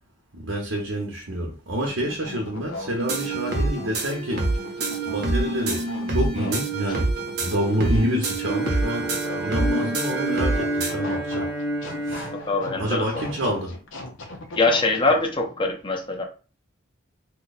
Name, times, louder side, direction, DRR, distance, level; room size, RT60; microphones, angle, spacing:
voice 1, 0.3-4.5 5.1-7.1 7.4-11.5 12.0-12.3 12.8-13.7, equal, 85° right, 0.9 m, -28 dB
sound 1, 1.8-15.1, left 2 dB, 85° left, 0.7 m, -39 dB
sound 2, 3.0-10.9, right 2 dB, 55° right, 0.8 m, -26 dB
Bowed string instrument, 8.3-13.5, right 1 dB, 60° left, 1.1 m, -30 dB
voice 2, 12.2-13.4 14.5-16.2, left 3 dB, 25° left, 0.6 m, -24 dB
2.9 x 2.2 x 4.0 m
head